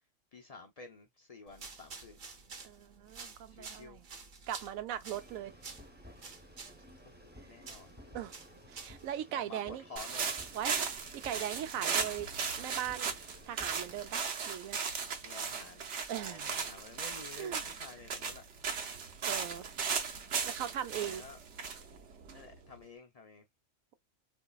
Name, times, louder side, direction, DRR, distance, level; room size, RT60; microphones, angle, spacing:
voice 1, 0.3-2.2 3.5-4.0 6.8-6.9 7.2-8.2 9.4-10.4 15.2-18.4 21.0-21.4 22.3-23.5, left 4 dB, 55° left, 0.4 m, -51 dB
sound 1, 1.5-9.1, right 4 dB, 45° right, 0.7 m, -51 dB
voice 2, 2.6-4.0 4.5-5.5 8.1-8.3 8.7-9.8 10.5-12.3 12.6-13.1 13.5-14.8 16.1-16.6 17.3-17.6 19.2-19.7 20.4-21.2, right 10 dB, 90° right, 1.0 m, -39 dB
sound 2, 5.1-14.1, equal, 10° right, 0.7 m, -55 dB
sound 3, 10.0-22.7, right 6 dB, 65° right, 1.0 m, -37 dB
4.0 x 2.7 x 2.2 m
omnidirectional pair, 1.4 m